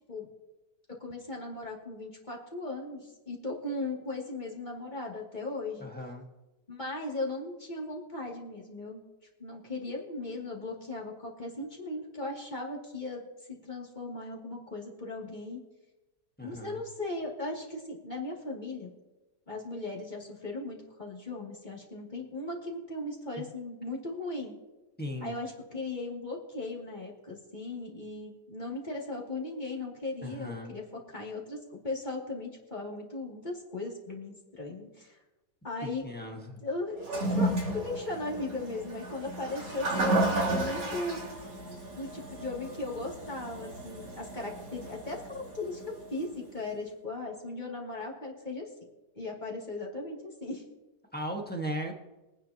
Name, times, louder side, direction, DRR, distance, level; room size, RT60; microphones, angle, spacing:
voice 1, 0.9-5.9 6.7-9.0 9.4-13.2 13.5-15.6 16.4-18.9 19.5-24.5 25.2-35.2 35.6-36.1 36.5-37.0 37.3-41.2 42.0-48.7 49.2-50.6, left 2 dB, 25° left, -3 dB, 2.6 m, -37 dB
voice 2, 5.8-6.3 16.4-16.8 25.0-25.3 30.2-30.7 35.8-36.6 51.1-51.9, equal, 5° left, 1 dB, 1.3 m, -37 dB
Toilet flush, 37.0-46.3, right 1 dB, 85° right, 3.8 m, -33 dB
23.0 x 9.8 x 2.9 m, 1.1 s
omnidirectional pair, 1.8 m